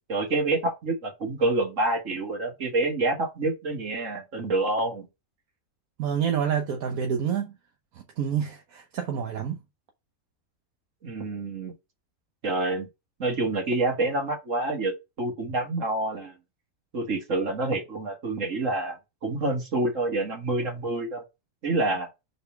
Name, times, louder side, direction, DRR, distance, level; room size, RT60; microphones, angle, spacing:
voice 1, 0.1-5.1 11.0-11.7 12.4-12.9 13.2-16.4 16.9-21.2 21.6-22.1, right 2 dB, 60° right, 2.2 m, -27 dB
voice 2, 6.0-7.5 8.2-9.6, right 8 dB, 80° right, 1.3 m, -27 dB
5.4 x 4.2 x 4.5 m
omnidirectional pair, 1.5 m